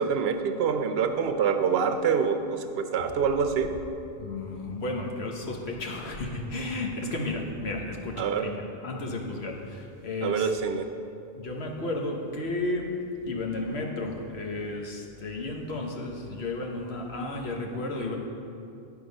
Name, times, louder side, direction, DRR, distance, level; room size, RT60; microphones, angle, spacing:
voice 1, 0.0-3.7 8.2-8.5 10.2-10.9, right 6 dB, 75° right, 7 dB, 0.8 m, -26 dB
voice 2, 4.2-10.5 11.4-12.9 13.2-18.2, left 2 dB, 90° left, 1 dB, 1.3 m, -33 dB
9.8 x 5.1 x 5.2 m, 2.6 s
omnidirectional pair, 1.0 m